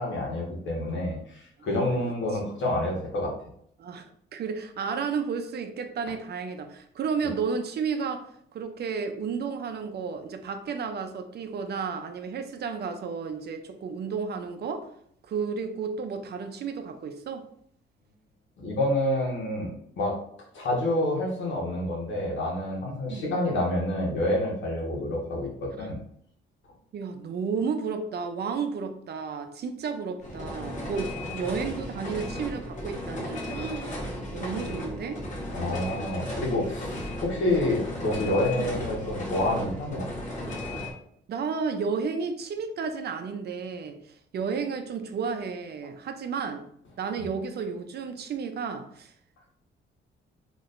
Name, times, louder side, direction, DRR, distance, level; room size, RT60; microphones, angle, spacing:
voice 1, 0.0-3.3 18.6-20.2 20.5-26.0 35.5-40.1 47.2-47.3, left 1 dB, 70° left, -3 dB, 1.5 m, -28 dB
voice 2, 3.8-8.3 8.5-14.9 15.3-17.4 23.1-23.3 24.9-25.0 25.8-25.9 26.9-35.2 38.6-38.7 41.3-46.6 47.0-49.1, right 5 dB, 55° right, 7 dB, 0.6 m, -32 dB
sound 1, 30.2-40.9, left 1 dB, 40° left, 1.2 m, -35 dB
4.1 x 3.0 x 2.5 m, 0.67 s
cardioid pair, 90°, 20 cm